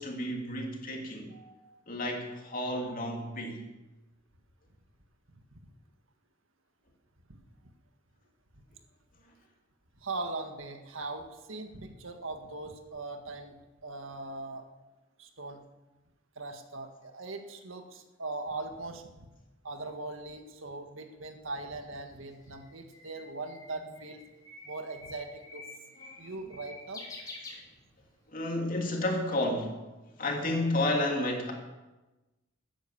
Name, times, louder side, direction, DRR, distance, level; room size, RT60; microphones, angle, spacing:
voice 1, 0.0-1.3 1.9-3.7 26.0-26.1 28.3-29.8 30.2-31.5, left 1 dB, 45° left, 1 dB, 2.9 m, -31 dB
voice 2, 1.3-1.8 10.0-13.6 13.8-14.6 15.2-15.6 16.4-19.3 19.6-24.2 24.6-25.6 26.2-27.0, right 3 dB, 90° right, 5 dB, 1.8 m, -40 dB
Bird, 22.0-28.2, left 2 dB, 20° left, 2.9 m, -48 dB
14.0 x 10.0 x 7.2 m, 1.1 s
head